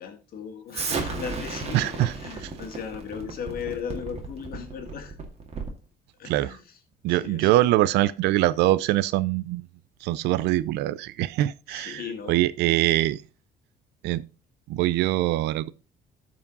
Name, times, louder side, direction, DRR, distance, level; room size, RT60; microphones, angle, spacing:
voice 1, 0.0-5.2 6.2-6.8 7.1-7.6 11.7-12.4, left 7 dB, 60° left, 2.0 m, -37 dB
Explosion, 0.7-5.8, right 4 dB, 40° right, 2.1 m, -34 dB
voice 2, 1.7-2.1 6.2-6.5 7.0-9.7 10.0-12.0 12.3-13.2 14.0-14.2 14.7-15.7, right 15 dB, 85° right, 0.6 m, -23 dB
12.5 x 4.9 x 3.9 m
cardioid pair, 110°, 17 cm